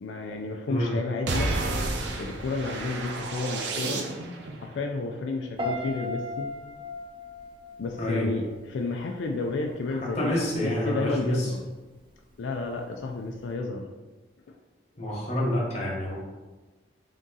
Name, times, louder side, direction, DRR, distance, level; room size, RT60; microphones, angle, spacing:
voice 1, 0.0-1.6 2.2-4.0 4.6-6.5 7.8-11.6 12.4-13.9, left 3 dB, 85° left, 2 dB, 0.4 m, -31 dB
sound 1, 1.3-4.5, right 2 dB, 75° right, 0.5 m, -30 dB
Piano, 5.6-8.7 9.0-9.4, left 1 dB, 25° right, 0.6 m, -35 dB
voice 2, 10.0-11.5 15.0-16.1, equal, 35° left, -4 dB, 1.0 m, -27 dB
3.6 x 2.7 x 3.7 m, 1.2 s
head